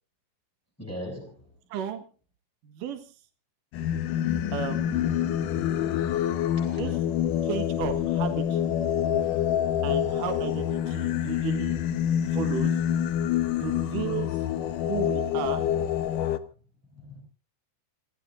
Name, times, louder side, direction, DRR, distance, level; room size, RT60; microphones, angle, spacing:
voice 1, 0.8-1.5 6.6-7.0 16.9-17.2, equal, 5° left, 7.1 m, -40 dB
voice 2, 1.7-2.0 2.6-3.0 4.5-5.3 6.8-7.0 7.4-8.6 9.8-11.8 12.2-12.7 13.5-14.4 14.8-15.7, right 8 dB, 75° right, 3.1 m, -34 dB
Singing, 3.7-16.4, left 10 dB, 75° left, 2.5 m, -27 dB
28.5 x 17.0 x 2.6 m
omnidirectional pair, 3.9 m